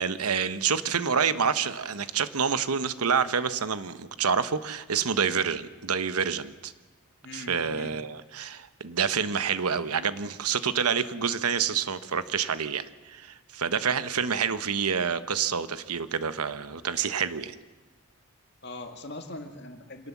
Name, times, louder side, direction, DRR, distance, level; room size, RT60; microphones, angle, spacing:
voice 1, 0.0-6.7 7.3-17.5, right 6 dB, 90° right, 13 dB, 1.0 m, -28 dB
voice 2, 7.2-7.9 14.1-14.4 18.6-20.1, left 2 dB, 50° left, 5 dB, 2.0 m, -41 dB
26.0 x 18.0 x 7.3 m, 1.3 s
head